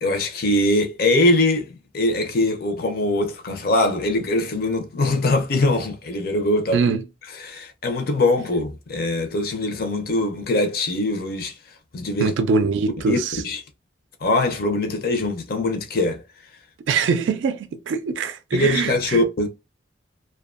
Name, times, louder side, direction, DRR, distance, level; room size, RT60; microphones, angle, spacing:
voice 1, 0.0-6.8 7.3-11.5 11.9-12.3 13.1-13.2 13.4-13.6 14.2-16.2 18.5-19.5, left 2 dB, 50° left, 0.5 m, -22 dB
voice 2, 12.2-13.4 16.9-19.2, right 5 dB, 80° right, 0.3 m, -23 dB
2.5 x 2.2 x 2.4 m
head